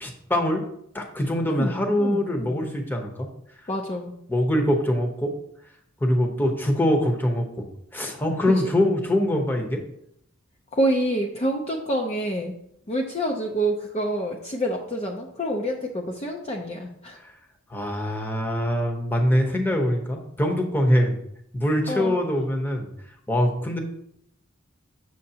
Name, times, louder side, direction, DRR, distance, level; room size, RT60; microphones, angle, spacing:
voice 1, 0.0-0.6 0.9-3.3 4.3-5.3 6.0-7.7 7.9-9.8 17.2-17.3 17.7-21.2 21.5-22.9 23.3-23.8, equal, 10° left, 2 dB, 0.9 m, -23 dB
voice 2, 1.5-2.7 3.7-4.1 8.6-8.8 10.7-12.5 12.9-17.2 21.9-22.2, right 1 dB, 30° left, 0 dB, 0.6 m, -27 dB
7.8 x 6.4 x 2.8 m, 0.73 s
head